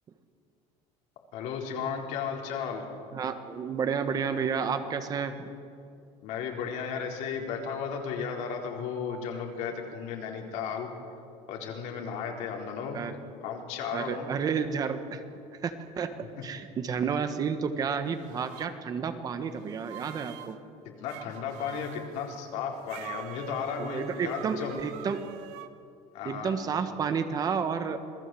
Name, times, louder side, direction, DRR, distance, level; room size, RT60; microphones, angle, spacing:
voice 1, 1.3-2.9 6.2-10.9 11.5-13.0 13.4-14.3 21.0-24.8 26.1-26.5, left 6 dB, 65° left, 1 dB, 4.1 m, -34 dB
voice 2, 3.1-5.5 12.9-13.2 13.9-15.2 15.6-16.2 16.4-20.6 23.8-25.2 26.2-28.0, right 6 dB, 30° right, 9 dB, 1.4 m, -31 dB
sound 1, 18.1-18.7 19.6-20.6 21.1-22.1 22.9-25.7, right 13 dB, 70° right, 1.4 m, -45 dB
27.0 x 19.5 x 7.8 m, 2.5 s
cardioid pair, 160°, 13 cm